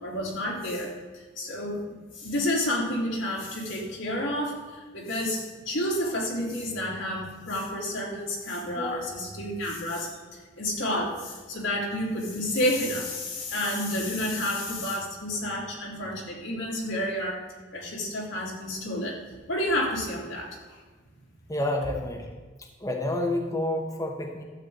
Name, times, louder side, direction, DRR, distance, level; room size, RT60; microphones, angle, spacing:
voice 1, 0.0-10.2 10.6-17.4 17.7-19.2 19.5-20.5, left 1 dB, 80° left, -3 dB, 3.2 m, -30 dB
voice 2, 8.8-9.2 21.5-22.4 22.8-24.4, left 1 dB, 20° left, 1 dB, 1.1 m, -29 dB
12.0 x 8.6 x 3.9 m, 1.4 s
head